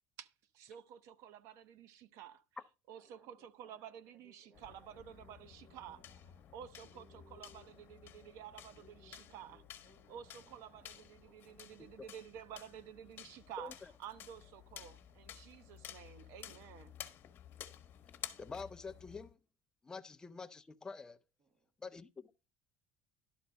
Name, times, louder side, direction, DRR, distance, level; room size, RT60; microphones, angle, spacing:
voice 1, 0.2-2.4 2.9-6.0 6.5-9.6 10.1-13.7 14.0-16.9, right 9 dB, 60° right, 0.7 m, -52 dB
voice 2, 3.0-6.5 6.8-7.8 8.7-12.5 21.4-21.7, equal, 40° right, 1.9 m, -67 dB
sound 1, 4.5-19.3, left 10 dB, 35° left, 1.1 m, -53 dB
voice 3, 18.4-19.4 19.8-21.2 21.8-22.3, left 4 dB, 10° left, 0.5 m, -47 dB
12.0 x 4.4 x 5.2 m
cardioid pair, 165°, 6 cm